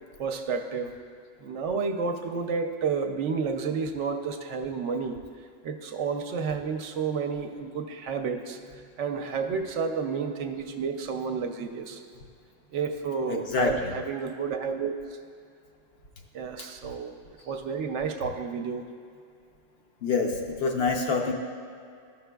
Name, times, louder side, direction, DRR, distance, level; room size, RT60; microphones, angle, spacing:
voice 1, 0.2-0.9 1.4-5.2 5.6-12.0 12.7-15.2 16.3-18.9, right 5 dB, 70° right, 5 dB, 0.9 m, -31 dB
voice 2, 13.3-13.7 20.0-20.3 20.6-21.3, left 4 dB, 60° left, 1 dB, 0.7 m, -25 dB
13.0 x 5.6 x 2.3 m, 2.4 s
omnidirectional pair, 1.3 m